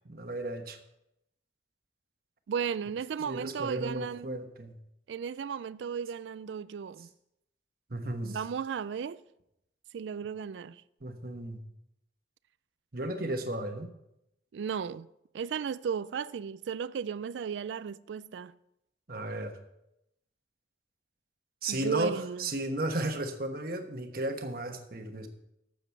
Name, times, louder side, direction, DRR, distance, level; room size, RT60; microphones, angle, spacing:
voice 1, 0.0-0.8 3.2-4.7 7.9-8.4 11.0-11.6 12.9-13.9 19.1-19.6 21.6-25.3, right 1 dB, 50° right, 1.2 m, -34 dB
voice 2, 2.5-4.3 5.1-7.1 8.2-9.2 9.9-10.8 14.5-15.1 15.3-18.5 21.7-22.5, right 7 dB, 75° right, 0.3 m, -35 dB
12.5 x 8.0 x 4.6 m
head